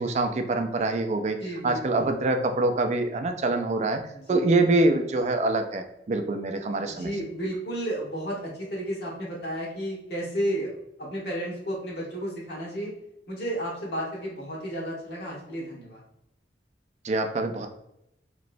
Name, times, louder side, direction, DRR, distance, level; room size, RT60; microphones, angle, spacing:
voice 1, 0.0-4.0 4.3-7.1 17.0-17.7, right 2 dB, 40° right, 6 dB, 0.3 m, -25 dB
voice 2, 1.4-2.1 4.1-4.5 6.9-10.7 11.0-12.9 13.3-16.0, right 1 dB, 65° left, -4 dB, 1.2 m, -32 dB
3.0 x 3.0 x 2.6 m, 0.84 s
head